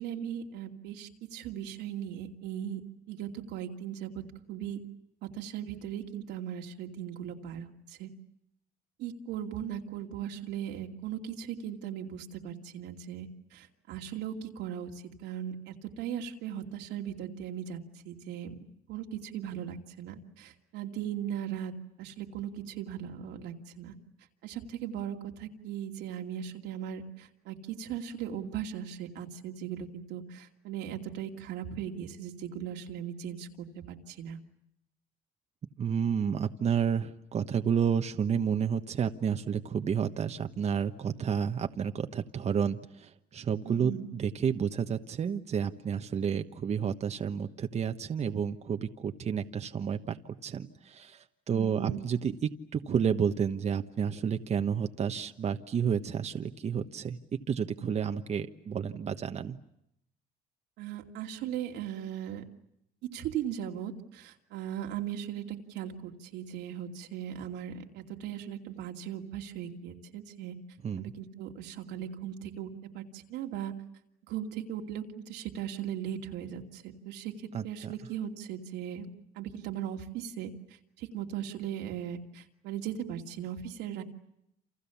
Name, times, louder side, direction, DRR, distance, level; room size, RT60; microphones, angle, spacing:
voice 1, 0.0-2.8 3.1-4.2 4.5-4.8 5.3-8.1 9.0-14.9 15.2-17.8 18.0-18.5 18.9-21.7 22.0-23.9 24.4-34.4 43.6-44.1 51.5-52.0 60.8-62.4 63.1-70.6 71.0-73.7 74.3-79.1 79.3-80.5 81.0-84.0, right 9 dB, 90° right, 2 dB, 2.7 m, -38 dB
voice 2, 35.8-57.2 57.5-59.6 70.8-71.1 77.5-77.9, right 7 dB, 40° right, 6 dB, 1.2 m, -31 dB
29.0 x 27.5 x 7.2 m, 0.79 s
cardioid pair, 110°, 17 cm